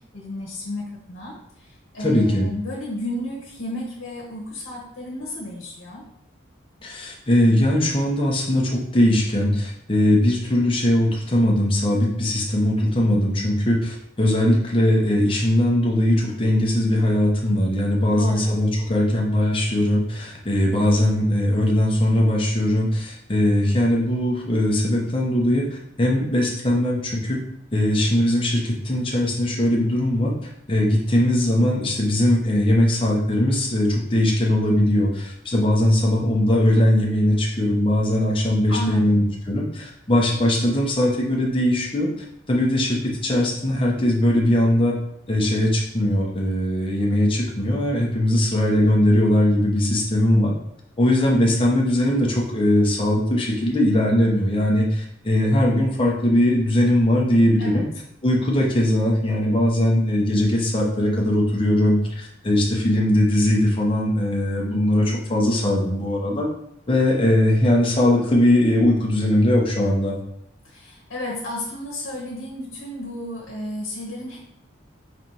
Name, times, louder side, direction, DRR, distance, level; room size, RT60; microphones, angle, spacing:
voice 1, 0.1-1.7 1.9-6.0 18.1-18.6 38.7-39.2 57.6-57.8 70.6-74.4, left 1 dB, 75° left, -4 dB, 1.0 m, -32 dB
voice 2, 2.0-2.5 6.8-25.6 26.0-27.4 27.7-30.3 30.7-42.1 42.5-44.9 45.3-50.5 51.0-57.8 58.2-66.5 66.9-70.2, left 1 dB, 25° left, -2 dB, 0.8 m, -20 dB
5.1 x 3.3 x 2.9 m, 0.75 s
head